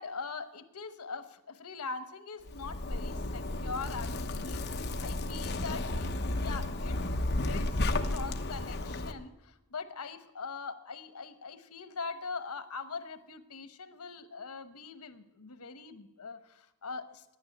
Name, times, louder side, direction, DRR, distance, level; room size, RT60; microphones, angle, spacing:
voice 1, 0.0-17.4, left 4 dB, 90° left, 10 dB, 1.0 m, -42 dB
Zipper (clothing), 2.5-9.1, left 2 dB, 50° left, 0.9 m, -33 dB
10.5 x 9.6 x 9.9 m, 0.93 s
head